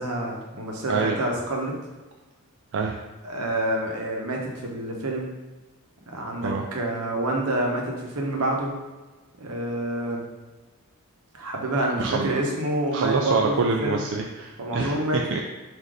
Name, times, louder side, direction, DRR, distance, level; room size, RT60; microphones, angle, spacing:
voice 1, 0.0-1.7 3.2-5.3 6.1-8.7 9.4-10.2 11.3-14.0 14.6-15.2, right 1 dB, 80° right, 0 dB, 0.9 m, -27 dB
voice 2, 0.9-1.2 2.7-3.0 6.4-6.7 12.0-12.4 12.9-15.4, right 4 dB, 55° right, 1 dB, 0.4 m, -26 dB
4.0 x 2.6 x 4.8 m, 1.2 s
head